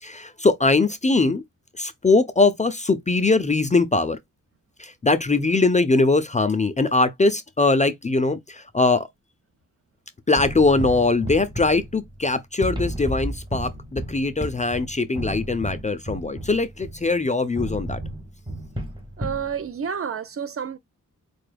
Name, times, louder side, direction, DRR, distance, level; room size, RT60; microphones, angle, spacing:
voice 1, 0.0-1.4 1.8-4.2 4.8-9.1 10.3-18.0, left 3 dB, 25° left, 0.3 m, -21 dB
sound 1, 10.4-12.3 12.6-17.1 17.6-19.5, right 1 dB, 15° right, 0.7 m, -32 dB
voice 2, 19.2-20.8, right 7 dB, 45° right, 0.5 m, -29 dB
4.3 x 2.3 x 3.2 m
wide cardioid pair, 145°, 31 cm